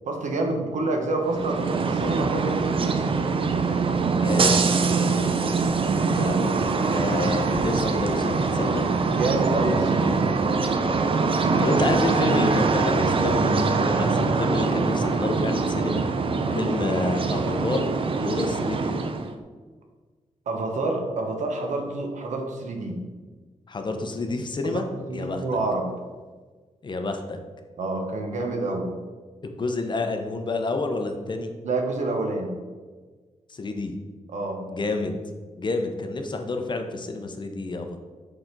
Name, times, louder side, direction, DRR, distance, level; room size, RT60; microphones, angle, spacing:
voice 1, 0.1-3.0 4.8-5.3 9.1-10.2 16.4-16.6 20.5-23.0 24.6-26.0 27.8-28.9 31.6-32.5 34.3-34.6, right 2 dB, 85° right, 3 dB, 1.0 m, -28 dB
sound 1, 1.2-19.3, right 4 dB, 45° right, 0.5 m, -23 dB
voice 2, 4.2-4.6 6.1-6.5 6.8-8.8 10.9-11.0 11.6-16.0 16.5-19.0 23.7-24.9 25.1-25.4 26.8-27.4 29.4-31.5 33.5-33.9 34.7-35.2 35.6-38.0, left 2 dB, 40° left, 5 dB, 0.7 m, -28 dB
6.7 x 3.9 x 4.5 m, 1.4 s
wide cardioid pair, 105°, 12 cm